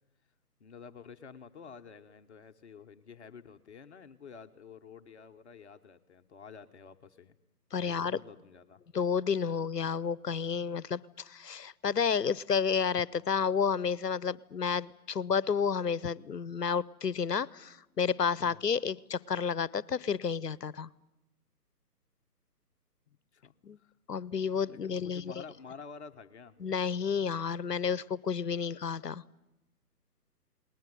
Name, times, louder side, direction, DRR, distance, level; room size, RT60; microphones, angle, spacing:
voice 1, 0.6-7.3 7.8-8.8 18.4-18.6 23.1-23.9 24.7-26.6, left 6 dB, 45° left, 7 dB, 1.2 m, -50 dB
voice 2, 7.7-8.2 8.9-20.9 23.6-23.8 24.1-25.2 26.6-29.2, left 6 dB, 80° left, 23 dB, 0.9 m, -31 dB
29.0 x 20.0 x 9.4 m, 1.0 s
figure-of-eight pair, 140°, 47 cm